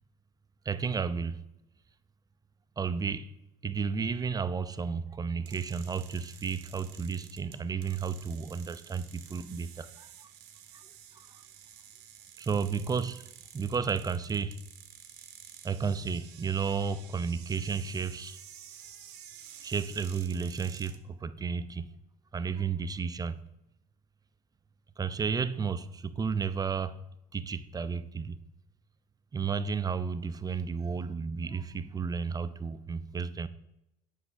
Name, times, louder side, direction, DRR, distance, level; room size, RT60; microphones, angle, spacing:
voice 1, 0.7-1.4 2.8-3.3 3.6-10.3 10.7-10.8 11.2-11.3 12.4-13.3 13.5-14.6 15.6-18.4 19.6-21.9 22.3-23.4 25.0-27.0 27.3-28.4 29.3-33.5, right 5 dB, 20° right, 0.5 m, -32 dB
sound 1, 5.5-21.0, right 9 dB, 60° right, 0.8 m, -51 dB
7.9 x 5.5 x 3.8 m
hypercardioid pair, 65°, 20 cm